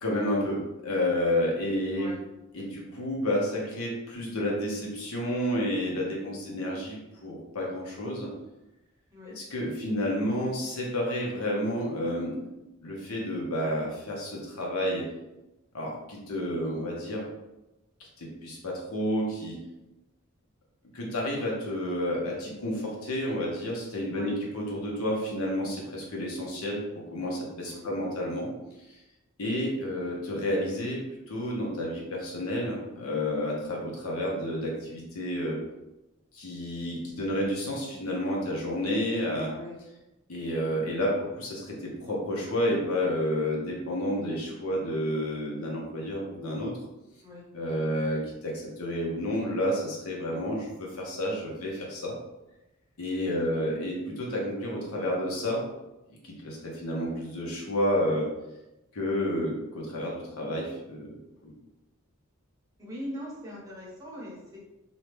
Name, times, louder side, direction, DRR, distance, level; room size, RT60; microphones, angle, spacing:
voice 1, 0.0-2.1 2.5-8.3 9.2-12.4 12.8-15.1 15.7-17.2 18.2-19.6 20.9-28.5 28.9-29.0 29.4-35.6 36.3-39.5 40.3-46.7 47.5-52.1 53.0-55.6 56.2-58.3 58.9-61.5, left 1 dB, 80° left, -2 dB, 0.8 m, -30 dB
voice 2, 62.8-64.6, left 1 dB, 15° right, -6 dB, 0.8 m, -41 dB
2.6 x 2.1 x 3.1 m, 0.97 s
head